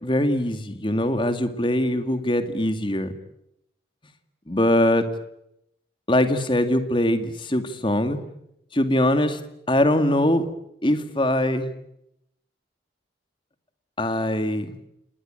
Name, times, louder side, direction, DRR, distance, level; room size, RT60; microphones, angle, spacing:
voice 1, 0.0-3.1 4.5-5.1 6.1-8.2 8.7-9.4 9.7-10.5 10.8-11.7 14.0-14.7, left 1 dB, 25° left, 9 dB, 2.2 m, -22 dB
28.5 x 20.0 x 9.0 m, 0.79 s
head